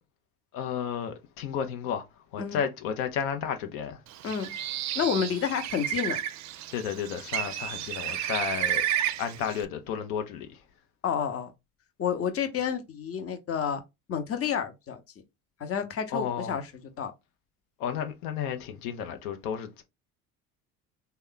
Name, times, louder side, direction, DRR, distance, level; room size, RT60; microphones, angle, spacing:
voice 1, 0.5-2.0 2.3-4.0 6.7-8.8 9.2-10.6 16.1-16.6 17.8-19.8, left 7 dB, 75° left, 0.7 m, -32 dB
Bird, 4.1-9.6, right 11 dB, 45° right, 0.4 m, -32 dB
voice 2, 4.9-6.2 11.0-11.5 12.0-13.8 14.1-15.0 15.6-16.6 17.0-17.1, left 7 dB, 35° left, 0.8 m, -29 dB
3.1 x 2.2 x 3.7 m
hypercardioid pair, 65°, 42 cm